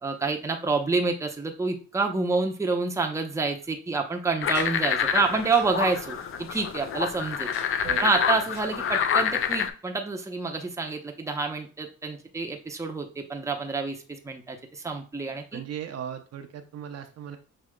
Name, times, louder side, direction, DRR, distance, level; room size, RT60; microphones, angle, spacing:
voice 1, 0.0-7.5 8.0-15.6, right 4 dB, 10° right, 2 dB, 0.7 m, -28 dB
Tick-tock, 3.6-3.7 4.5-4.6 5.5-5.6 5.9-6.0 6.2-6.6 7.5-7.9 8.5-8.6 9.1-9.2 9.5-9.6, left 3 dB, 85° left, 1.7 m, -44 dB
sound 1, 4.4-9.7, left 7 dB, 45° left, 0.5 m, -27 dB
voice 2, 15.5-17.4, right 9 dB, 55° right, 4 dB, 0.6 m, -37 dB
6.2 x 2.7 x 2.2 m, 0.36 s
cardioid pair, 90°, 30 cm